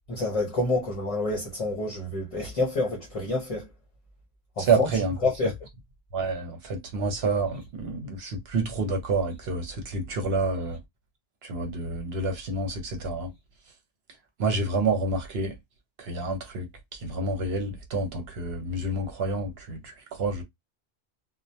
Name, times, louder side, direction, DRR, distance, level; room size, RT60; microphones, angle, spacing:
voice 1, 0.1-3.7 4.6-4.9 5.2-5.5, left 2 dB, 40° left, 0.7 m, -28 dB
voice 2, 4.6-5.1 6.1-10.8 11.4-13.3 14.4-15.5 16.0-16.7 16.9-20.4, right 3 dB, 75° right, 0.9 m, -28 dB
2.1 x 2.1 x 2.7 m
omnidirectional pair, 1.1 m